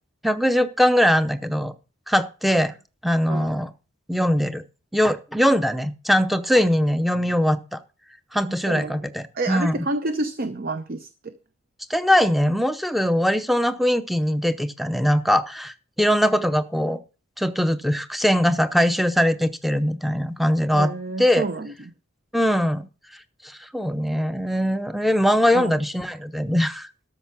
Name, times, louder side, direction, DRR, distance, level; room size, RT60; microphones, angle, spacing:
voice 1, 0.2-1.7 2.1-2.7 3.0-3.7 4.1-4.6 4.9-7.8 8.3-9.8 11.9-17.0 17.4-20.9 21.2-21.5 22.3-22.8 23.7-26.9, equal, ahead, 0.6 m, -21 dB
voice 2, 8.5-9.0 9.3-11.3 20.7-21.9 25.5-25.8, right 2 dB, 50° right, 0.7 m, -29 dB
13.0 x 6.5 x 5.9 m
head